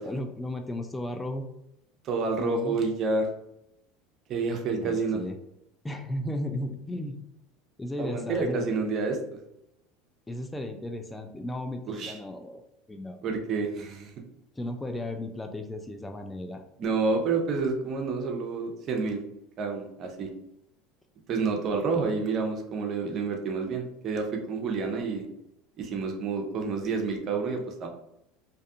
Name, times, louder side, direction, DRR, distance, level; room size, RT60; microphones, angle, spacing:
voice 1, 0.0-1.5 2.4-2.8 4.7-5.4 5.8-7.2 7.8-8.7 10.3-12.6 12.9-13.2 14.6-16.6, left 1 dB, 10° left, 5 dB, 0.3 m, -35 dB
voice 2, 2.0-3.3 4.3-5.2 8.0-9.2 11.9-12.2 13.2-14.1 16.8-19.2 19.6-20.3 21.3-25.3 25.8-27.9, right 4 dB, 45° right, 3 dB, 0.5 m, -29 dB
2.5 x 2.2 x 2.6 m, 0.81 s
hypercardioid pair, 80°, 0 cm